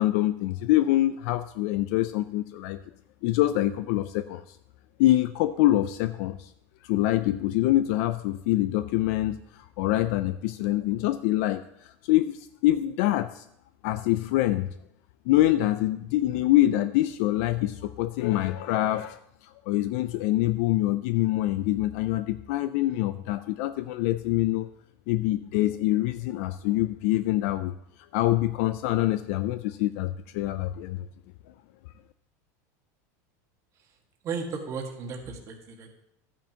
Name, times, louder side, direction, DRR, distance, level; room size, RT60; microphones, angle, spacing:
voice 1, 0.0-2.8 3.2-4.6 5.0-6.5 6.8-13.4 13.8-14.7 15.3-24.7 25.1-27.7 28.1-31.1, left 15 dB, 65° left, 12 dB, 0.3 m, -25 dB
voice 2, 34.2-35.9, right 5 dB, 35° right, 2 dB, 1.6 m, -35 dB
12.0 x 8.9 x 2.8 m, 0.76 s
supercardioid pair, 145°, 9 cm